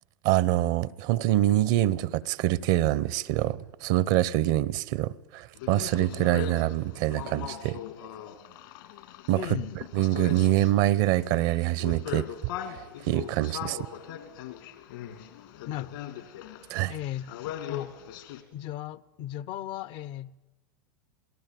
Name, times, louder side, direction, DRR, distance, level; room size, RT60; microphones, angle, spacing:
voice 1, 0.2-7.8 9.3-9.4 9.9-12.3 13.1-13.9 16.7-16.9, right 14 dB, 60° right, 0.8 m, -25 dB
sound 1, 5.6-18.4, left 11 dB, 70° left, 3.0 m, -40 dB
voice 2, 9.3-9.8 15.7-16.1 16.9-17.3 17.7-17.9 18.5-20.4, left 12 dB, 50° left, 0.8 m, -36 dB
27.0 x 18.5 x 9.3 m
hypercardioid pair, 105°, 11 cm